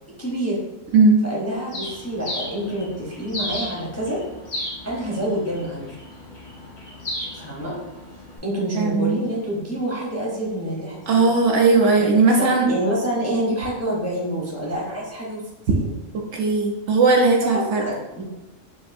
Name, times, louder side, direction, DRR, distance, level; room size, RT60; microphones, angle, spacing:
voice 1, 0.2-0.6 1.2-4.2 4.8-5.9 7.3-7.7 8.4-11.2 12.0-12.1 12.4-15.9 17.4-18.2, right 1 dB, 15° left, -5 dB, 0.6 m, -27 dB
Bird, 1.7-8.4, left 1 dB, 80° left, 1.8 m, -35 dB
voice 2, 8.8-9.2 11.1-12.7 16.3-17.8, right 3 dB, 65° right, 0 dB, 0.9 m, -17 dB
5.7 x 2.6 x 2.6 m, 1.0 s
omnidirectional pair, 1.5 m